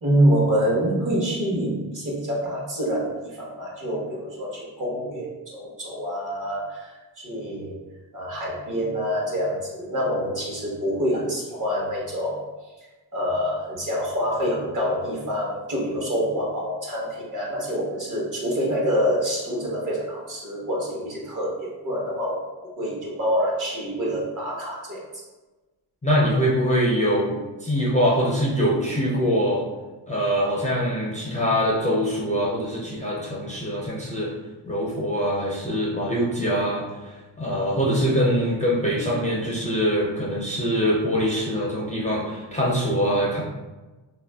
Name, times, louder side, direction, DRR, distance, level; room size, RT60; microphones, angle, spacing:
voice 1, 0.0-7.8 8.1-12.5 13.1-25.0, equal, 45° right, -4 dB, 1.0 m, -26 dB
voice 2, 26.0-29.6 30.1-34.3 34.7-43.4, equal, 20° left, -5 dB, 0.4 m, -23 dB
3.1 x 2.4 x 2.2 m, 1.2 s
cardioid pair, 100°, 45 cm